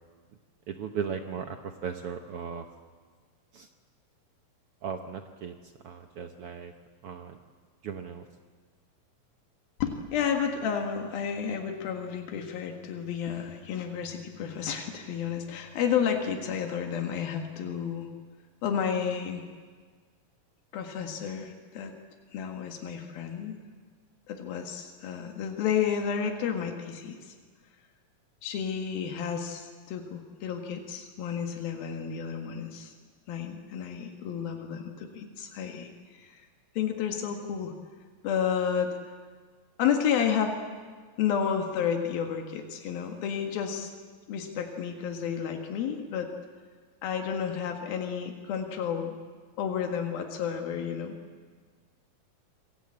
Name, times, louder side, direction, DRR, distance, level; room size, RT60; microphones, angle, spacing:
voice 1, 0.7-2.7 3.5-3.7 4.8-5.5 5.8-6.7 7.0-7.4 7.8-8.2, right 7 dB, 80° right, 6 dB, 1.3 m, -36 dB
voice 2, 9.8-18.1 18.6-19.5 20.7-21.9 22.3-23.6 24.3-27.3 28.4-32.9 33.3-36.5 36.8-37.7 38.2-39.0 39.8-40.6 41.2-43.9 44.3-46.3 47.0-49.2 49.6-51.2, left 7 dB, 85° left, 4 dB, 3.6 m, -31 dB
27.5 x 20.5 x 8.7 m, 1.5 s
omnidirectional pair, 4.1 m